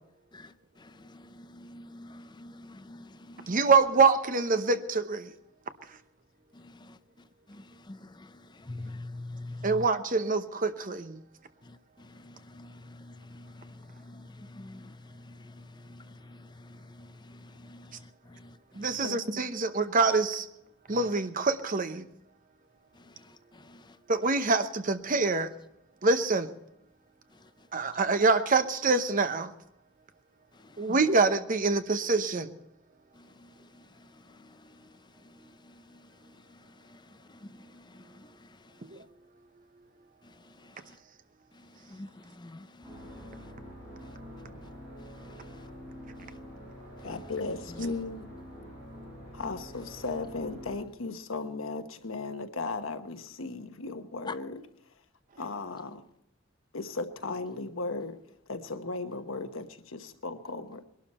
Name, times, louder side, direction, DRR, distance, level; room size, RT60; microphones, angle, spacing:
voice 1, 1.4-3.6 7.9-8.0 8.7-9.7 12.3-13.0 13.3-13.5 14.1-14.2 14.5-14.9 17.7-17.8 42.0-42.1 42.4-42.6, left 2 dB, 20° left, 0.5 m, -43 dB
voice 2, 3.5-5.3 9.6-11.2 18.8-20.5 20.9-22.0 24.1-25.5 26.0-26.5 27.7-29.5 30.8-32.5 38.8-39.0, right 4 dB, 40° right, 0.9 m, -25 dB
sound 1, 42.8-50.8, equal, 10° right, 7.8 m, -46 dB
voice 3, 47.0-48.3 49.3-54.6 55.4-56.0 56.7-58.2 58.5-60.8, left 3 dB, 85° left, 1.1 m, -36 dB
21.5 x 12.0 x 4.3 m
head